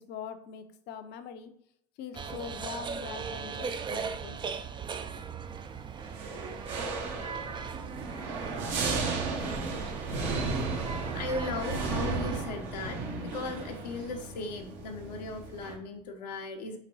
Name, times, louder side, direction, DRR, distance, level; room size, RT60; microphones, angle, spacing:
voice 1, 0.0-1.5 2.0-4.4, left 7 dB, 55° left, 8 dB, 0.6 m, -42 dB
sound 1, 2.1-12.4, right 6 dB, 20° right, 0.4 m, -39 dB
sound 2, 6.0-15.7, right 3 dB, 60° right, 1.1 m, -35 dB
sound 3, 6.9-12.7, right 2 dB, 85° right, 1.1 m, -46 dB
voice 2, 8.4-10.2 10.6-16.8, left 3 dB, 80° left, 3 dB, 0.9 m, -38 dB
4.4 x 4.0 x 2.9 m, 0.70 s
hypercardioid pair, 70°, 21 cm